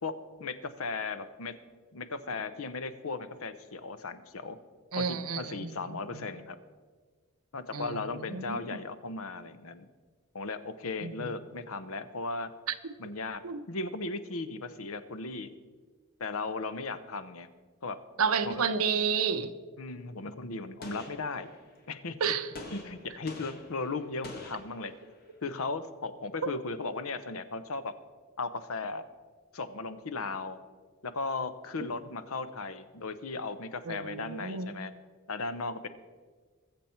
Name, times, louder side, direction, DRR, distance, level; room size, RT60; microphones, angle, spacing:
voice 1, 0.0-1.5 1.9-4.6 4.9-6.6 7.5-9.9 10.3-12.5 13.0-13.4 13.7-15.5 16.2-17.5 17.8-18.0 18.4-18.6 19.8-21.5 21.9-22.3 22.7-24.9 25.4-28.0 28.4-29.0 29.5-30.6 31.0-34.9 35.3-35.9, left 3 dB, 75° left, 0.8 m, -36 dB
voice 2, 4.9-6.3 7.7-8.8 11.0-11.3 13.4-13.6 18.2-19.5 22.2-22.5 33.9-34.7, right 6 dB, 85° right, 0.8 m, -31 dB
Gunshot gunfire, 20.8-21.9 22.5-25.3, left 2 dB, 45° left, 1.7 m, -47 dB
21.0 x 7.1 x 4.5 m
head